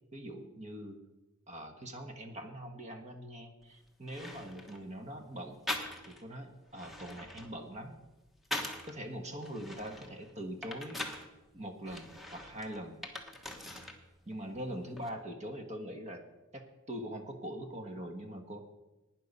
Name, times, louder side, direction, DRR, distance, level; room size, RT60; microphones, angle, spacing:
voice 1, 0.1-1.0 1.5-5.6 6.0-8.0 8.9-11.1 11.5-13.0 14.3-16.2 16.5-18.6, equal, 35° right, 5 dB, 1.3 m, -43 dB
sound 1, 3.6-3.7 4.1-4.8 5.7-6.3 6.7-8.9 9.4-11.3 11.8-14.0 14.3-15.1, left 1 dB, ahead, 1.1 m, -42 dB
12.0 x 9.5 x 5.4 m, 1.0 s
head